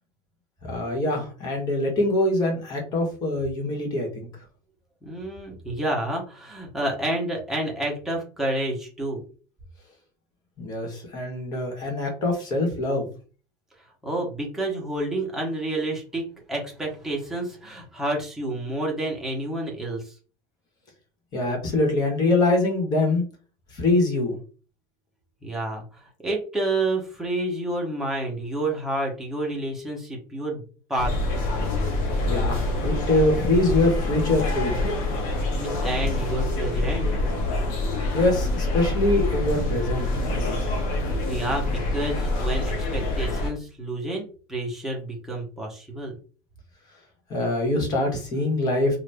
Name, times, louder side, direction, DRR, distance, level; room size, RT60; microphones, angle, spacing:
voice 1, 0.6-4.3 10.6-13.1 21.3-23.2 23.7-24.4 32.2-34.7 38.1-40.8 47.3-49.0, left 2 dB, 40° left, 1 dB, 1.4 m, -24 dB
voice 2, 5.0-9.2 14.0-20.1 25.4-30.6 30.9-31.1 35.5-37.1 41.3-46.2, right 1 dB, 5° right, -2 dB, 1.1 m, -29 dB
sound 1, 31.0-43.5, left 2 dB, 70° left, 1.1 m, -26 dB
2.8 x 2.6 x 3.5 m, 0.38 s
cardioid pair, 150°, 10 cm